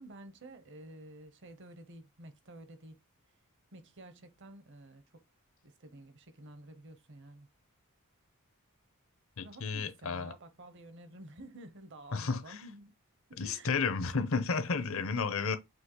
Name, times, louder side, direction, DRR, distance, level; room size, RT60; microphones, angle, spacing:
voice 1, 0.0-3.0 3.7-5.2 5.6-7.5 9.4-12.9 13.3-13.9 14.7-15.6, right 1 dB, 55° right, 0.8 m, -51 dB
voice 2, 9.4-10.3 12.1-12.6 13.4-15.6, left 5 dB, 65° left, 0.7 m, -32 dB
6.2 x 2.8 x 2.9 m
head